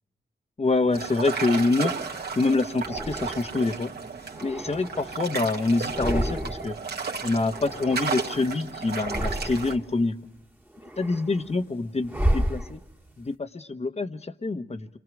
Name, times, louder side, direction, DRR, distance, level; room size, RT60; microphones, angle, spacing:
voice 1, 0.6-2.0 2.4-3.9 4.4-6.8 7.2-10.2 11.0-12.8 13.2-14.9, left 3 dB, 35° left, 9 dB, 1.1 m, -26 dB
sound 1, 0.9-2.1 2.8-3.7 4.2-5.4 5.8-6.9 7.1-8.5 8.9-10.0 10.4-13.2, equal, 10° right, 1.4 m, -32 dB
sound 2, 0.9-9.8, right 5 dB, 65° right, 2.0 m, -34 dB
29.0 x 24.0 x 6.2 m, 0.90 s
wide cardioid pair, 105°, 18 cm